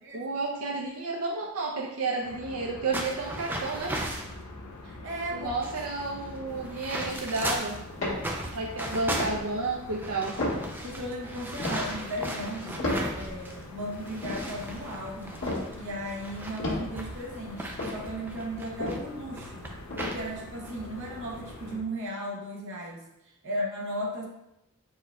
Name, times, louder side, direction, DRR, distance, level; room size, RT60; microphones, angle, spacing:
voice 1, 0.1-3.9 5.3-7.8 8.5-10.3, right 3 dB, 80° right, -1 dB, 0.5 m, -31 dB
sound 1, 2.2-21.8, left 2 dB, 85° left, 0.6 m, -45 dB
sound 2, 2.9-4.3 5.0-5.1 5.4-7.8 8.2-13.6 13.9-19.0 19.4-20.2 20.6-20.8 21.3-21.6, right 1 dB, 10° right, 0.3 m, -37 dB
voice 2, 4.8-5.5 10.8-15.4 15.8-19.7 20.1-24.3, equal, 60° right, -1 dB, 0.9 m, -36 dB
sound 3, 6.4-8.7 9.0-9.4 9.9-10.0 10.1-13.5 13.9-16.3 16.6-20.6 21.0-21.1, left 1 dB, 60° left, 1.5 m, -34 dB
4.6 x 4.4 x 2.2 m, 0.89 s
head